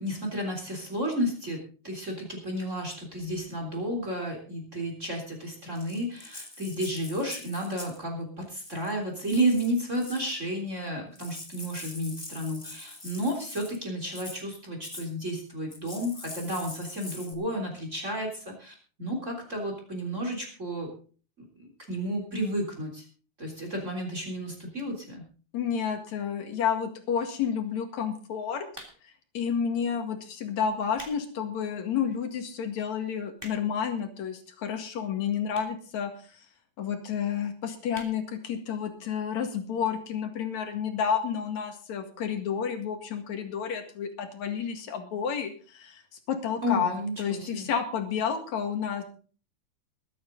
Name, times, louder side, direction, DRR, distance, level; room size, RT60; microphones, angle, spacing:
voice 1, 0.0-20.9 21.4-23.1 23.4-25.3 46.6-47.7, equal, 25° right, 2 dB, 3.7 m, -32 dB
Rattle (instrument), 5.8-8.0 8.5-8.9 9.3-10.3 10.9-11.0 11.2-13.8 14.1-14.4 14.8-15.1 15.7-17.3, left 2 dB, 15° left, 1.1 m, -44 dB
voice 2, 25.5-28.7 29.0-36.5 36.8-49.0, left 7 dB, 65° left, 6 dB, 3.2 m, -30 dB
sound 1, 28.7-29.3 30.0-30.2 30.7-31.2 31.7-31.8 32.4-32.5 32.7-32.8 33.0-33.9 34.6-34.7 35.5-35.8 36.1-36.2 36.4-36.5 36.8-36.9 37.2-37.4 37.9-38.2 38.6-38.7 38.9-39.0, right 1 dB, 10° right, 2.7 m, -46 dB
22.0 x 9.5 x 3.9 m, 0.40 s
omnidirectional pair, 3.5 m